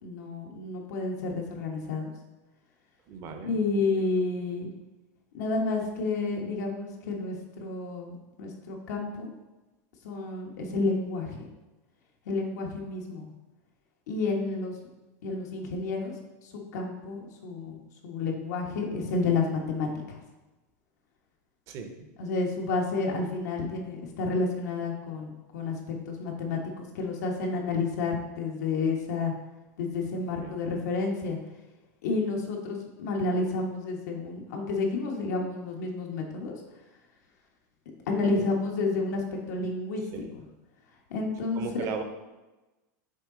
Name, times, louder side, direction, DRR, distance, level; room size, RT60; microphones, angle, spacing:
voice 1, 0.0-2.1 3.4-4.7 5.3-9.3 10.0-11.4 12.2-13.3 14.1-14.7 15.2-16.1 16.7-20.2 22.2-25.7 26.1-29.3 29.8-31.4 32.0-36.6 38.1-40.5 41.1-41.9, left 3 dB, 80° left, 0 dB, 1.2 m, -30 dB
voice 2, 3.1-3.6 21.7-22.1 30.4-30.5 40.1-40.3 41.6-42.0, right 6 dB, 35° right, 6 dB, 0.7 m, -37 dB
6.4 x 4.1 x 3.8 m, 1.1 s
supercardioid pair, 165°, 9 cm